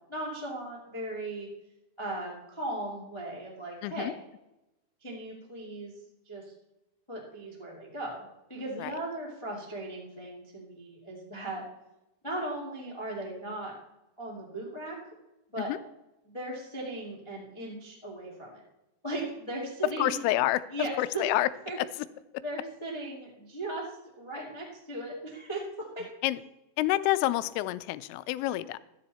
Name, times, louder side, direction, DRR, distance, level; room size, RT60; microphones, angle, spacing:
voice 1, 0.1-1.5 2.0-4.2 5.0-6.0 6.2-6.5 7.1-11.6 12.2-13.7 14.2-15.0 15.5-15.7 16.2-18.6 19.0-20.1 20.7-21.2 21.6-21.8 22.4-23.9 24.2-26.1, right 1 dB, 20° left, -3 dB, 0.8 m, -37 dB
voice 2, 3.8-4.1 8.8-8.9 15.6-15.8 20.0-20.6 21.0-21.5 26.2-26.4 26.8-28.8, left 16 dB, 85° left, 15 dB, 3.1 m, -28 dB
13.0 x 10.5 x 4.2 m, 0.93 s
omnidirectional pair, 5.7 m